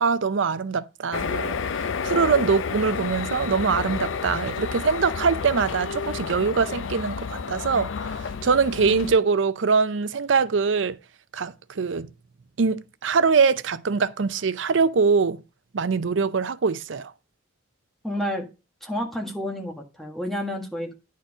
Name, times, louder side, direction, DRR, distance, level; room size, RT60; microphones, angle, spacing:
voice 1, 0.0-11.0 11.3-12.1 12.6-15.4 15.7-17.1, right 5 dB, 75° right, 0.6 m, -23 dB
sound 1, 1.1-9.2, left 5 dB, 90° left, 0.5 m, -30 dB
voice 2, 18.0-18.5 18.8-20.9, equal, ahead, 1.6 m, -30 dB
10.5 x 4.6 x 4.9 m
head